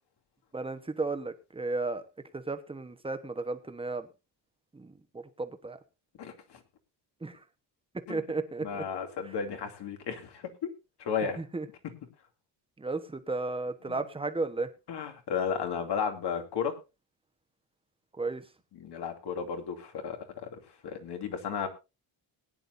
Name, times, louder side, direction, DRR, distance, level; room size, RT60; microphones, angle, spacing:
voice 1, 0.5-2.1 2.3-4.1 4.7-4.9 5.4-5.8 7.2-7.4 8.1-8.8 11.4-11.7 12.8-14.7 18.2-18.4, right 3 dB, 10° right, 9 dB, 1.1 m, -34 dB
voice 2, 6.2-6.6 8.1-8.2 8.6-10.7 11.0-11.4 13.9-14.0 14.9-16.7 18.7-21.7, left 6 dB, 60° left, 5 dB, 2.7 m, -34 dB
20.5 x 10.0 x 2.6 m, 0.27 s
cardioid pair, 160°, 45 cm